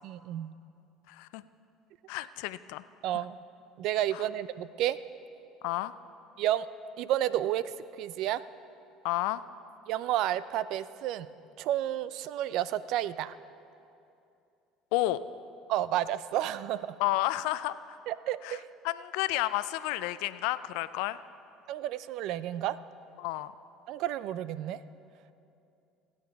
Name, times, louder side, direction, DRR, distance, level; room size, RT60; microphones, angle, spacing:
voice 1, 0.0-0.5 3.0-3.4 3.8-5.0 6.4-6.7 7.0-7.7 8.0-8.4 9.9-11.3 11.6-13.4 15.7-17.0 18.1-18.7 21.7-22.8 23.9-24.8, right 12 dB, 70° right, 16 dB, 0.4 m, -31 dB
voice 2, 1.1-1.4 2.1-2.8 3.1-3.2 4.1-4.3 5.6-5.9 9.0-9.4 14.9-15.2 17.0-18.0 18.4-18.6 18.8-21.2 23.2-23.5, left 16 dB, 75° left, 15 dB, 0.4 m, -31 dB
22.0 x 8.7 x 3.5 m, 2.7 s
supercardioid pair, 80°, 0 cm